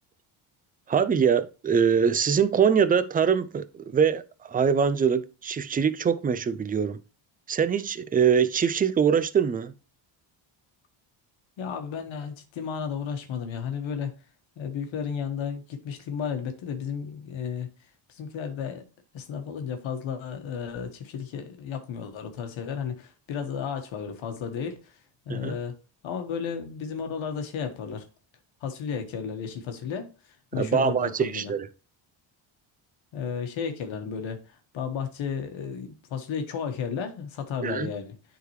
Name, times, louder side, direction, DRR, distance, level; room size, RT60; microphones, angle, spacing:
voice 1, 0.9-7.0 7.5-9.7 25.3-25.6 30.5-31.7 37.6-37.9, right 7 dB, 20° right, 0.4 m, -23 dB
voice 2, 11.6-14.1 14.6-17.7 18.1-18.8 19.1-25.0 25.3-25.7 26.0-28.0 28.6-30.1 30.5-31.5 33.1-38.1, left 7 dB, 75° left, 1.4 m, -33 dB
9.2 x 3.8 x 3.1 m
cardioid pair, 100°, 48 cm